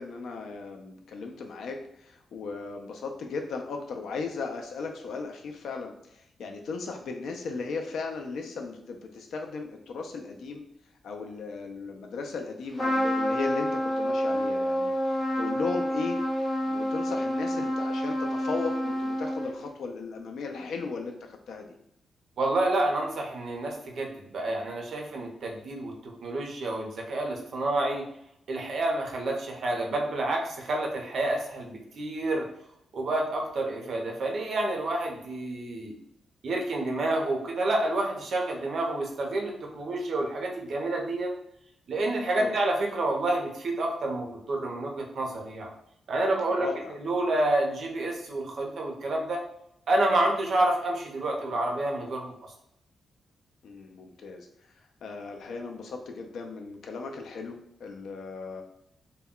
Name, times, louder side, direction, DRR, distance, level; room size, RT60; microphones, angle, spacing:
voice 1, 0.0-10.6 11.0-16.2 16.7-21.7 42.3-42.6 46.5-46.9 53.6-54.5 55.0-58.6, left 4 dB, 75° left, 3 dB, 0.3 m, -36 dB
Trumpet, 12.8-19.7, equal, 25° left, 0.7 m, -28 dB
voice 2, 22.4-28.0 28.5-32.5 32.9-36.0 36.4-41.3 41.9-45.7 46.1-49.4 49.9-52.3, right 2 dB, 60° right, 1 dB, 0.6 m, -29 dB
2.2 x 2.1 x 3.6 m, 0.75 s
wide cardioid pair, 155°, 0 cm